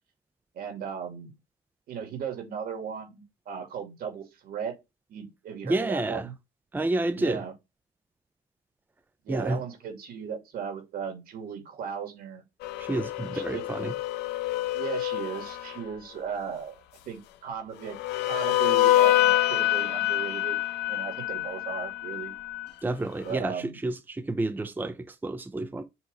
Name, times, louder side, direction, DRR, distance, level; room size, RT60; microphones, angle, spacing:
voice 1, 0.5-1.3 1.9-4.8 5.1-6.3 7.1-7.5 9.2-12.4 13.2-13.7 14.7-16.8 17.1-18.0 18.2-20.6 20.9-22.3 23.2-23.8, right 7 dB, 60° right, 2.5 m, -36 dB
voice 2, 5.6-6.3 6.7-7.4 9.3-9.6 12.8-13.9 22.8-25.8, right 2 dB, 10° right, 0.6 m, -29 dB
sound 1, 12.6-15.8 17.9-22.7, left 14 dB, 85° left, 0.8 m, -26 dB
7.2 x 3.1 x 4.1 m
cardioid pair, 110°, 17 cm